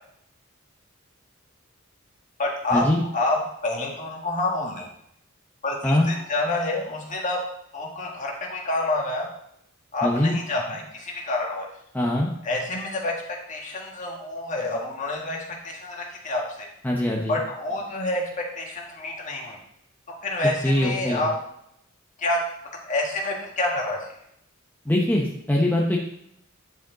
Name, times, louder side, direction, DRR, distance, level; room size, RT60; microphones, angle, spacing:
voice 1, 2.4-2.8 3.1-3.4 3.6-4.9 5.6-7.4 7.7-9.3 9.9-11.7 12.4-13.1 13.5-15.4 15.6-16.7 17.3-18.2 18.6-19.6 20.2-21.3 22.2-22.4 22.9-24.0, left 2 dB, 35° left, -1 dB, 1.7 m, -27 dB
voice 2, 10.0-10.4 11.9-12.3 16.8-17.4 20.4-21.3 24.8-26.0, left 1 dB, 10° left, -2 dB, 0.8 m, -22 dB
10.0 x 5.1 x 3.9 m, 0.75 s
head